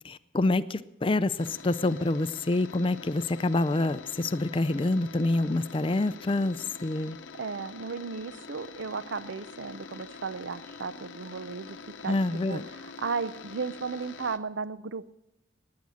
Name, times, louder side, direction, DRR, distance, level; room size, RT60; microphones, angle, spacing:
voice 1, 0.0-7.2 12.0-12.6, left 2 dB, 25° left, 0.4 m, -27 dB
sound 1, 1.4-14.4, left 5 dB, 70° left, 0.8 m, -46 dB
voice 2, 7.3-15.1, right 5 dB, 70° right, 0.6 m, -35 dB
19.5 x 9.6 x 6.4 m
head